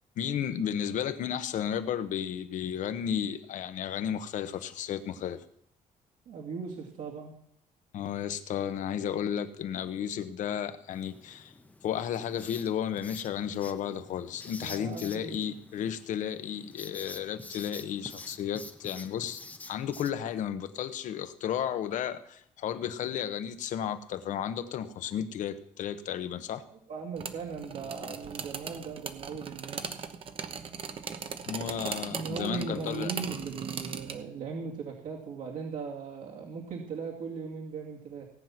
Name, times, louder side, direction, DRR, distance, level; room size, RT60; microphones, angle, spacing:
voice 1, 0.2-5.4 7.9-11.5 11.8-19.4 19.7-26.6 31.5-33.1, left 9 dB, 65° left, 11 dB, 1.1 m, -33 dB
voice 2, 6.3-7.4 14.5-15.6 26.7-30.0 32.1-38.3, right 5 dB, 70° right, -2 dB, 2.6 m, -38 dB
Writing, 10.9-20.1, left 2 dB, 10° left, 0.9 m, -48 dB
sound 1, 27.2-34.2, right 6 dB, 40° right, 1.1 m, -39 dB
18.0 x 9.2 x 6.0 m, 0.68 s
cardioid pair, 170°, 14 cm